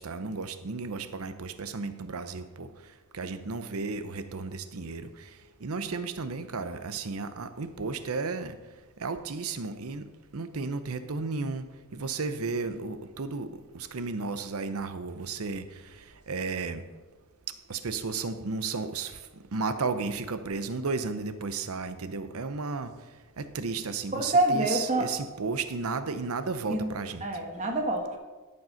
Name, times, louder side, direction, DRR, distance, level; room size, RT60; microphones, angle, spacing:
voice 1, 0.0-2.7 3.1-5.3 5.6-8.6 9.0-10.0 10.3-11.7 11.9-15.6 16.3-16.8 17.7-19.2 19.5-22.9 23.4-27.3, right 4 dB, 75° right, 11 dB, 0.7 m, -33 dB
voice 2, 24.1-25.0 26.7-26.9 27.2-28.2, right 2 dB, 35° right, 2 dB, 1.5 m, -26 dB
13.0 x 5.4 x 5.7 m, 1.3 s
head